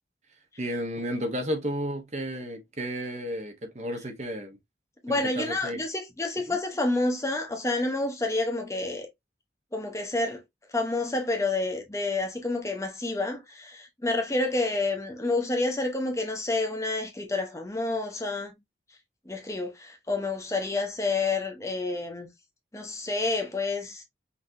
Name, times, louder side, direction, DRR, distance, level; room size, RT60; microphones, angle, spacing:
voice 1, 0.6-4.6 5.1-5.8 6.5-6.6, equal, 40° right, 1.0 m, -32 dB
voice 2, 5.0-9.1 9.7-10.4 10.7-18.6 19.3-22.3 22.7-24.0, left 2 dB, 15° left, 0.8 m, -29 dB
5.7 x 2.9 x 2.7 m
head